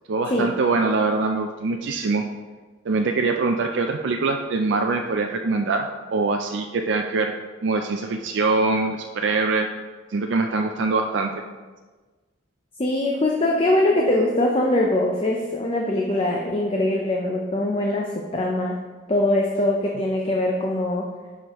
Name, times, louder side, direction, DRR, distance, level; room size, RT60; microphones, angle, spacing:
voice 1, 0.1-2.2 2.9-7.4 7.6-9.7 10.1-11.3, right 3 dB, 60° right, 4 dB, 0.4 m, -23 dB
voice 2, 12.8-18.8 19.1-21.0, left 1 dB, 25° left, -1 dB, 0.6 m, -22 dB
11.0 x 4.9 x 3.0 m, 1.3 s
head